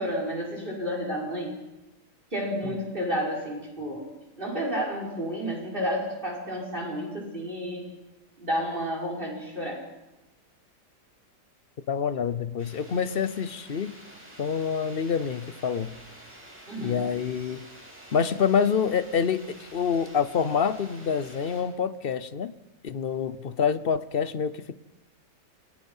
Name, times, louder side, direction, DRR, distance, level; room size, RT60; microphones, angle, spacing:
voice 1, 0.0-1.6 2.3-4.1 4.4-7.9 8.4-9.9 16.7-17.0, equal, 30° right, -1 dB, 5.8 m, -31 dB
voice 2, 11.9-13.9 14.4-16.0 16.8-17.7 18.1-22.5 22.8-24.7, left 7 dB, 45° left, 14 dB, 0.8 m, -27 dB
sound 1, 12.6-21.6, equal, 5° right, 7.7 m, -49 dB
28.0 x 20.5 x 5.6 m, 1.0 s
omnidirectional pair, 1.8 m